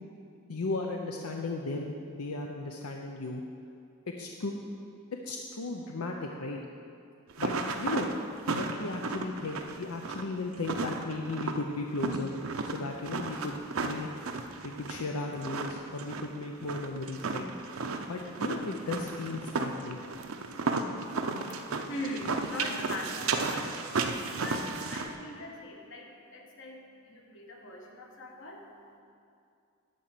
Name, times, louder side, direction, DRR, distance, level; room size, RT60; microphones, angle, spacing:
voice 1, 0.5-3.4 4.2-4.5 5.2-6.6 7.4-7.5 7.8-8.1 8.5-12.3 12.7-14.1 14.6-17.5 18.1-20.0, left 3 dB, 85° left, 2 dB, 0.6 m, -35 dB
sound 1, 7.3-25.1, right 4 dB, 70° right, 0.6 m, -34 dB
voice 2, 21.5-29.0, left 1 dB, 60° left, 0 dB, 1.3 m, -41 dB
11.5 x 4.2 x 7.6 m, 2.4 s
head